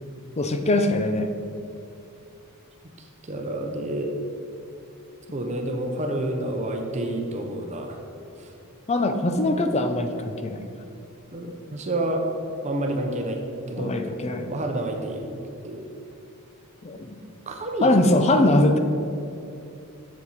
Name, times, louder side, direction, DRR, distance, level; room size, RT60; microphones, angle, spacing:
voice 1, 0.4-1.3 8.9-10.7 13.8-14.5 16.8-17.1 17.8-18.8, left 1 dB, 30° left, 7 dB, 0.5 m, -22 dB
voice 2, 3.3-4.1 5.3-8.0 8.4-8.5 11.3-12.3 12.6-13.4 13.7-14.0 14.5-15.3 15.6-15.9 17.5-17.9, right 1 dB, 30° right, 3 dB, 0.7 m, -29 dB
7.4 x 7.2 x 4.1 m, 2.7 s
head